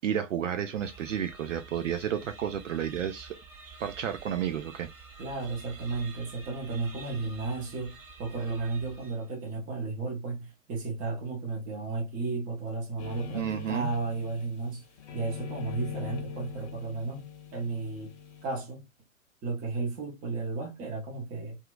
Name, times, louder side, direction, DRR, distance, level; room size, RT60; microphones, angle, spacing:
voice 1, 0.0-3.4 3.8-4.9 13.3-13.9, right 9 dB, 65° right, 0.5 m, -31 dB
sound 1, 0.7-9.4, right 5 dB, 35° right, 1.3 m, -49 dB
voice 2, 5.2-7.9 8.2-14.8 15.1-17.2 17.5-18.1 18.4-18.8 19.4-21.6, right 3 dB, 20° right, 0.9 m, -33 dB
sound 2, 13.0-14.7 15.0-18.4, left 7 dB, 30° left, 0.6 m, -42 dB
2.8 x 2.4 x 2.3 m
figure-of-eight pair, 115°, 41 cm